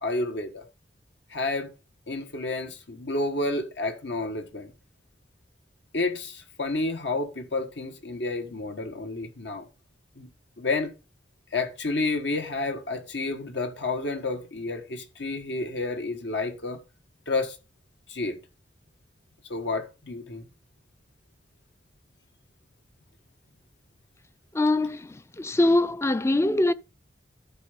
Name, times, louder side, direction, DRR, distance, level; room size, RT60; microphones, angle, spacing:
voice 1, 0.0-0.6 1.3-1.7 2.1-4.7 5.9-9.7 10.1-10.3 10.6-10.9 11.5-16.8 17.3-17.6 18.1-18.4 19.5-20.5, left 2 dB, 80° left, 1.7 m, -30 dB
voice 2, 24.5-26.7, left 2 dB, 15° left, 0.4 m, -23 dB
12.5 x 4.7 x 5.4 m
head